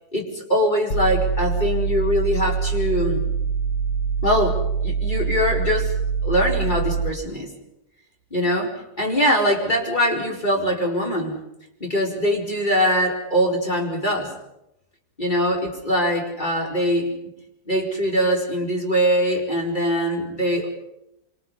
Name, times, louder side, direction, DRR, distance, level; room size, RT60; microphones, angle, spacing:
voice 1, 0.1-3.3 4.2-5.9 6.2-7.5 8.3-11.4 11.8-14.3 15.2-17.1 17.7-20.7, equal, 30° left, -1 dB, 5.0 m, -22 dB
sound 1, 0.9-7.1, right 6 dB, 65° left, 1.7 m, -24 dB
26.5 x 25.5 x 5.6 m, 0.85 s
omnidirectional pair, 1.7 m